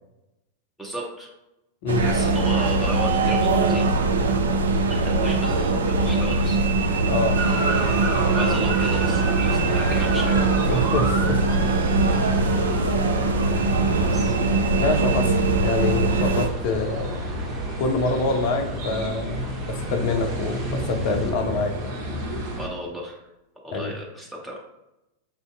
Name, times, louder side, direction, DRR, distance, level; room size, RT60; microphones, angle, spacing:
voice 1, 0.8-1.3 2.0-3.9 4.9-6.6 8.3-10.4 14.0-14.4 22.6-23.2 23.6-24.6, equal, 5° right, -3 dB, 0.6 m, -33 dB
sound 1, 1.9-16.5, right 3 dB, 70° right, 0.3 m, -21 dB
voice 2, 7.1-7.4 10.7-11.4 14.8-17.2 17.8-22.0 23.7-23.9, left 2 dB, 45° left, 6 dB, 0.5 m, -26 dB
sound 2, 7.4-22.7, right 1 dB, 55° right, 0.9 m, -31 dB
sound 3, 8.8-21.3, right 1 dB, 35° right, 1.2 m, -36 dB
5.6 x 2.6 x 2.4 m, 0.93 s
figure-of-eight pair, 90°, 0 cm